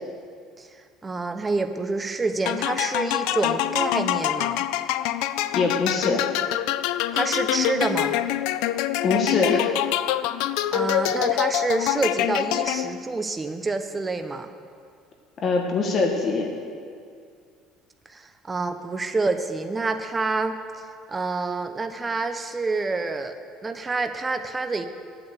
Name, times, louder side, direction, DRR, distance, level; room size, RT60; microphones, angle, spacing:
voice 1, 1.0-4.6 7.1-8.2 10.7-14.5 18.1-20.6 21.1-23.4 23.6-24.9, right 3 dB, 15° right, 7 dB, 0.5 m, -27 dB
sound 1, 2.5-13.1, left 13 dB, 75° left, 0.4 m, -25 dB
voice 2, 5.5-6.2 9.0-9.7 15.4-16.5, left 4 dB, 30° left, 2 dB, 1.2 m, -23 dB
12.0 x 8.7 x 7.9 m, 2.2 s
cardioid pair, 175°, 0 cm